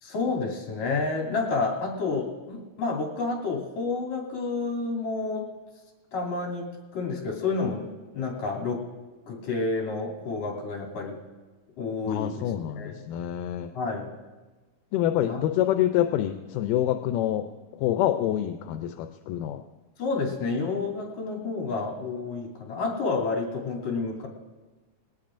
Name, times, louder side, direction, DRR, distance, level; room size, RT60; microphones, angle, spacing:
voice 1, 0.0-5.5 6.1-6.7 6.9-7.9 8.1-8.9 9.3-11.2 11.8-13.0 13.7-14.1 15.3-15.4 20.0-24.3, left 3 dB, 60° left, -2 dB, 4.0 m, -29 dB
voice 2, 12.1-13.7 14.9-17.5 17.8-19.6, left 12 dB, 85° left, 7 dB, 2.2 m, -26 dB
21.0 x 17.5 x 2.5 m, 1.3 s
omnidirectional pair, 3.7 m